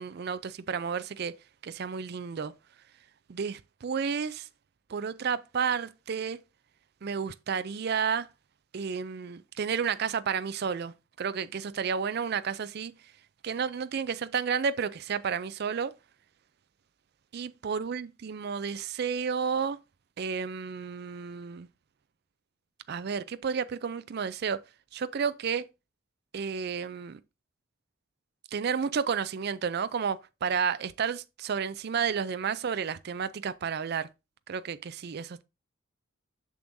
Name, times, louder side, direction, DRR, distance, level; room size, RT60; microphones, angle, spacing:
voice 1, 0.0-1.3 1.6-2.5 3.3-4.5 4.9-6.4 7.0-8.3 8.7-12.9 13.4-15.9 17.3-19.8 20.2-21.7 22.9-24.6 24.9-25.6 26.3-27.2 28.5-34.1 34.5-35.4, right 6 dB, 50° right, 0.4 m, -31 dB
6.9 x 6.2 x 2.6 m
head